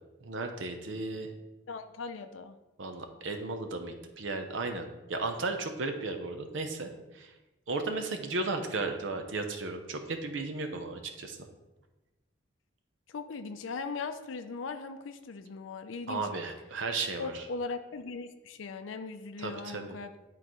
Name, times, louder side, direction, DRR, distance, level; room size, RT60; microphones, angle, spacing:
voice 1, 0.2-1.3 2.8-6.9 7.1-7.3 7.7-11.4 16.1-17.4 19.4-20.0, right 3 dB, 75° right, 5 dB, 0.7 m, -35 dB
voice 2, 1.7-2.6 13.1-16.3 17.2-20.1, left 4 dB, 85° left, 8 dB, 0.5 m, -39 dB
11.0 x 3.8 x 3.1 m, 1.1 s
head